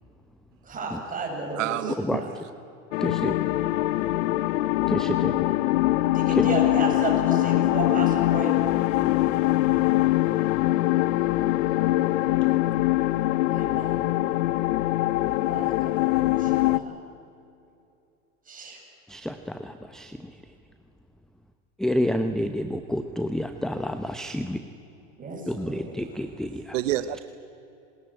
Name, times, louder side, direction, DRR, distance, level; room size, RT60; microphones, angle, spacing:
voice 1, 0.6-2.3 6.1-8.6 13.5-14.1 15.5-17.0 18.5-18.8 22.3-22.4 25.2-26.0, right 2 dB, 20° right, 0 dB, 7.5 m, -33 dB
voice 2, 1.6-2.2 12.5-12.6 26.7-27.2, right 14 dB, 75° right, 12 dB, 1.1 m, -28 dB
sound 1, 2.9-16.8, left 16 dB, 75° left, 0.9 m, -23 dB
voice 3, 3.0-3.4 4.9-5.3 6.3-6.4 19.1-20.2 21.8-24.6 25.5-26.8, left 1 dB, ahead, 8 dB, 0.9 m, -29 dB
27.5 x 20.0 x 8.9 m, 2.7 s
supercardioid pair, 125°, 38 cm